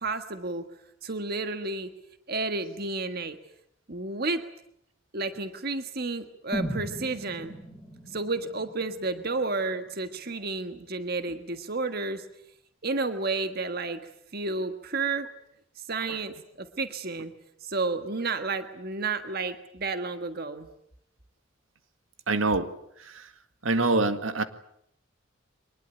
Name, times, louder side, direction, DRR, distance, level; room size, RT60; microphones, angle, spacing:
voice 1, 0.0-0.7 1.0-1.9 2.3-3.4 3.9-4.4 5.1-7.6 8.1-12.2 12.8-15.3 15.9-17.3 17.6-20.7, right 3 dB, 50° right, 9 dB, 1.6 m, -31 dB
sound 1, 6.5-10.5 10.8-10.9, equal, ahead, 6.9 m, -38 dB
voice 2, 22.3-22.7 23.0-23.3 23.6-24.4, right 3 dB, 85° right, 9 dB, 1.9 m, -25 dB
24.0 x 20.5 x 9.2 m, 0.74 s
head